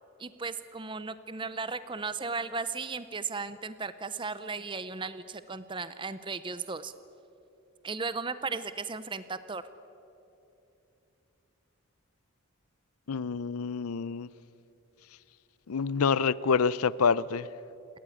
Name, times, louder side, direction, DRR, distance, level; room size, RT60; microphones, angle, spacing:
voice 1, 0.2-6.9 7.8-9.6, right 4 dB, 20° right, 0.6 m, -36 dB
voice 2, 13.1-14.3 15.7-17.5, left 5 dB, 80° left, 0.5 m, -27 dB
28.5 x 13.5 x 9.8 m
head